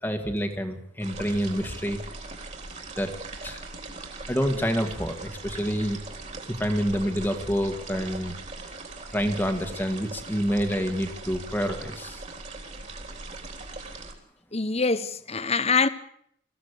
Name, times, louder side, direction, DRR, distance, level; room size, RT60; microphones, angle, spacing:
voice 1, 0.0-2.0 2.9-3.2 3.4-3.6 4.3-6.0 6.6-8.3 9.1-12.2, equal, 10° left, 1.8 m, -27 dB
sound 1, 1.0-14.1, right 3 dB, 35° right, 3.6 m, -40 dB
voice 2, 14.5-15.9, left 4 dB, 30° left, 1.0 m, -24 dB
23.5 x 15.5 x 8.2 m
head